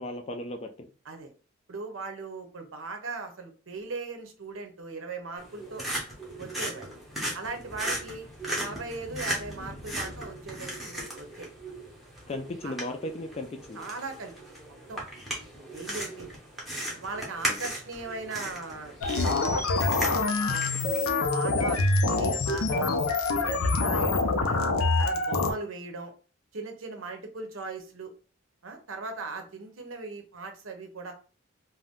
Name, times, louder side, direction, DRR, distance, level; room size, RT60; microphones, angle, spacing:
voice 1, 0.0-0.9 12.3-13.8, left 1 dB, 30° left, 6 dB, 0.3 m, -36 dB
voice 2, 1.7-5.8 6.4-6.9 7.3-8.3 8.5-11.7 12.6-12.7 13.8-14.3 14.6-15.0 15.5-16.3 16.9-19.7 20.4-23.0 23.3-24.6 25.0-26.1 26.5-28.1 28.6-31.1, right 3 dB, 75° right, 5 dB, 0.7 m, -39 dB
sound 1, 5.4-21.0, right 1 dB, ahead, 0.7 m, -37 dB
sound 2, 19.0-25.5, left 3 dB, 85° left, 0.5 m, -25 dB
2.6 x 2.2 x 3.5 m, 0.37 s
head